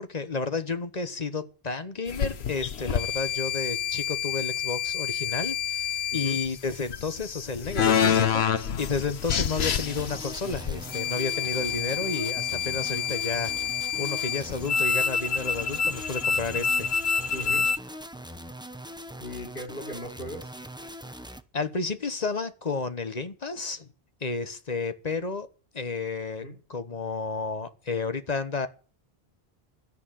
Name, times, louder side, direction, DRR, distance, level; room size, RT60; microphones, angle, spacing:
voice 1, 0.0-16.9 21.5-23.9 24.2-25.5 25.7-26.4 26.7-28.7, left 4 dB, 40° left, 1.2 m, -32 dB
sound 1, 2.1-17.8, left 7 dB, 85° left, 1.2 m, -28 dB
voice 2, 6.1-6.4 17.3-17.7 19.2-20.5 26.4-26.6, equal, 55° left, 4.0 m, -38 dB
sound 2, 9.8-21.4, equal, 5° right, 0.8 m, -42 dB
13.0 x 10.5 x 7.6 m
omnidirectional pair, 1.0 m